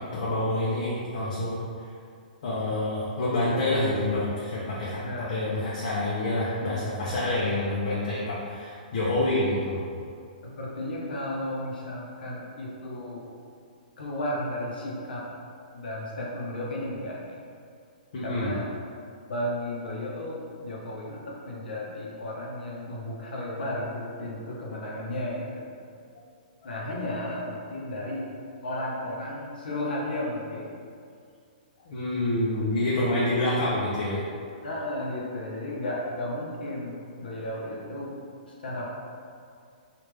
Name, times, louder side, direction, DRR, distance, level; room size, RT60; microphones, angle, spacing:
voice 1, 0.0-1.9 2.4-5.0 5.3-9.8 18.1-18.5 31.8-34.2, left 1 dB, 50° left, -7 dB, 0.6 m, -27 dB
voice 2, 5.0-5.5 10.4-13.3 14.0-15.3 15.7-17.4 18.2-18.7 19.3-25.7 26.6-28.3 28.6-30.8 34.6-38.2 38.6-38.9, left 1 dB, 90° left, -4 dB, 0.8 m, -34 dB
3.4 x 2.4 x 3.2 m, 2.3 s
hypercardioid pair, 165°, 5 cm